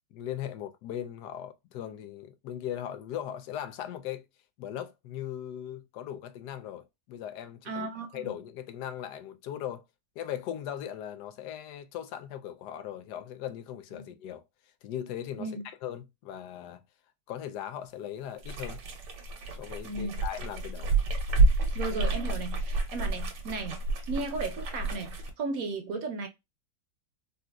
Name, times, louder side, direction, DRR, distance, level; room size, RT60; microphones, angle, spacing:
voice 1, 0.1-4.2 4.6-7.9 8.1-9.8 10.2-14.4 14.8-16.8 17.3-18.8 19.6-20.9, left 10 dB, 80° left, 1.1 m, -39 dB
voice 2, 7.6-8.3 13.9-14.1 15.4-15.6 19.8-20.2 21.7-23.8 24.1-26.3, right 3 dB, 65° right, 1.1 m, -35 dB
sound 1, 18.4-25.3, right 3 dB, 85° right, 1.4 m, -29 dB
4.0 x 2.4 x 2.2 m
omnidirectional pair, 1.8 m